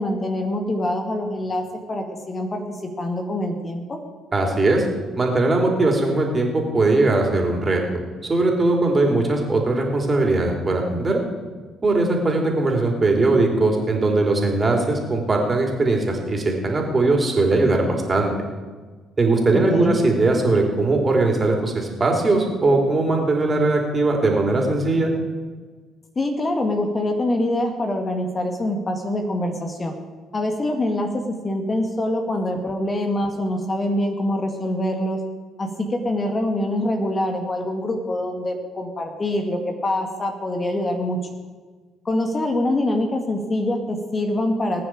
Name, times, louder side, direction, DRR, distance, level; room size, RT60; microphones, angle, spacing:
voice 1, 0.0-4.0 19.7-20.0 26.2-29.9 30.3-35.2 35.6-41.2 42.1-44.9, left 1 dB, 30° left, 4 dB, 2.0 m, -24 dB
voice 2, 4.3-4.9 5.2-7.8 8.2-11.2 11.8-18.3 19.2-25.1, right 2 dB, 30° right, 1 dB, 3.7 m, -20 dB
21.0 x 9.4 x 4.9 m, 1.4 s
figure-of-eight pair, 45°, 0 cm